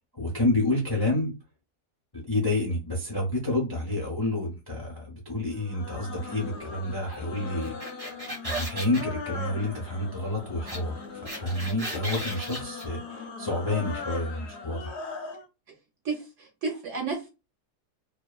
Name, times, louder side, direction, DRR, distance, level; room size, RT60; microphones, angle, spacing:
voice 1, 0.1-1.3 2.1-8.1 8.4-10.9 11.3-15.0, left 2 dB, 35° left, -2 dB, 0.4 m, -29 dB
sound 1, 5.5-15.5, left 4 dB, 60° left, 0.7 m, -40 dB
sound 2, 7.6-9.0 10.7-10.8 11.0-12.8, right 1 dB, 25° right, 1.1 m, -35 dB
voice 2, 16.0-17.3, right 4 dB, 60° right, 0 dB, 0.9 m, -32 dB
2.8 x 2.2 x 2.3 m, 0.28 s
omnidirectional pair, 1.8 m